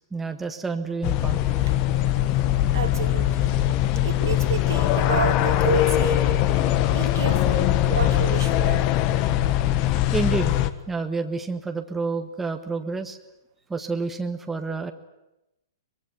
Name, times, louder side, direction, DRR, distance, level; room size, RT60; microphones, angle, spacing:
voice 1, 0.1-1.4 10.1-10.6 10.9-13.2 13.7-14.9, right 4 dB, 10° right, 5 dB, 1.6 m, -29 dB
sound 1, 1.0-10.7, left 13 dB, 35° left, 1.5 m, -21 dB
voice 2, 2.7-3.6 4.0-6.3 6.9-8.9, right 7 dB, 65° right, 4 dB, 3.0 m, -30 dB
24.0 x 22.5 x 9.6 m, 0.92 s
figure-of-eight pair, 115°, 2 cm